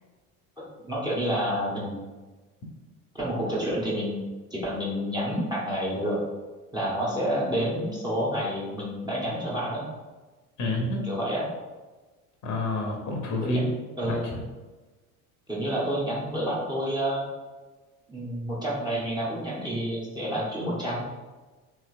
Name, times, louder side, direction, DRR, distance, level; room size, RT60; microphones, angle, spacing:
voice 1, 0.6-2.0 3.1-4.2 4.5-6.2 6.7-9.8 11.0-11.5 13.4-13.7 14.0-14.3 15.5-17.2 18.1-21.0, equal, 10° right, -5 dB, 0.9 m, -29 dB
voice 2, 10.6-11.1 12.4-13.7 14.0-14.4, left 2 dB, 40° left, 0 dB, 0.8 m, -28 dB
3.0 x 3.0 x 2.5 m, 1.2 s
hypercardioid pair, 70°, 44 cm